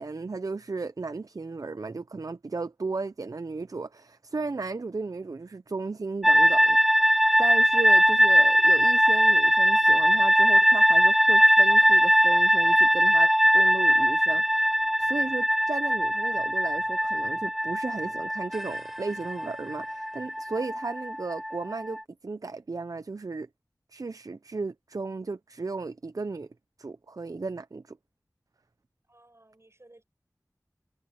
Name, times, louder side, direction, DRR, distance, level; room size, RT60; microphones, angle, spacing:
voice 1, 0.0-14.7 15.0-23.5 23.9-26.5 26.8-28.0, right 3 dB, 60° right, 0.5 m, -35 dB
sound 1, 6.2-22.0, equal, 5° right, 0.5 m, -21 dB
voice 2, 29.1-30.0, right 2 dB, 45° right, 7.4 m, -57 dB
wide cardioid pair, 40°, 7 cm